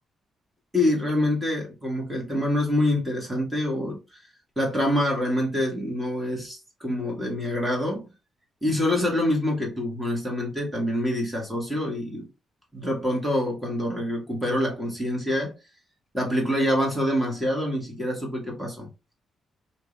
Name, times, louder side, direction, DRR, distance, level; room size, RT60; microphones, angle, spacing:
voice 1, 0.7-4.0 4.6-8.1 8.6-12.3 12.7-15.5 16.1-18.9, left 1 dB, 5° right, 1.8 m, -26 dB
3.4 x 2.7 x 3.2 m
cardioid pair, 90°, 0 cm